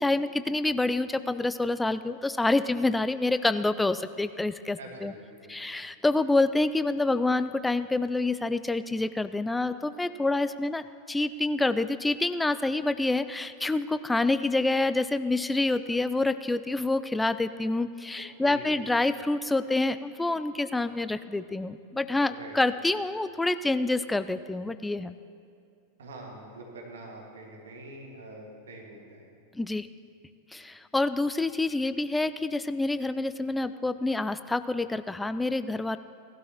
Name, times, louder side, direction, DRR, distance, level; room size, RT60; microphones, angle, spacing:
voice 1, 0.0-5.1 5.5-25.1 29.6-29.9 30.5-36.0, left 2 dB, 5° left, 13 dB, 0.3 m, -27 dB
voice 2, 4.8-5.7 18.4-18.9 22.3-22.8 26.0-29.2, right 2 dB, 65° right, 0 dB, 1.8 m, -45 dB
17.5 x 12.5 x 3.0 m, 2.5 s
figure-of-eight pair, 90°, 0 cm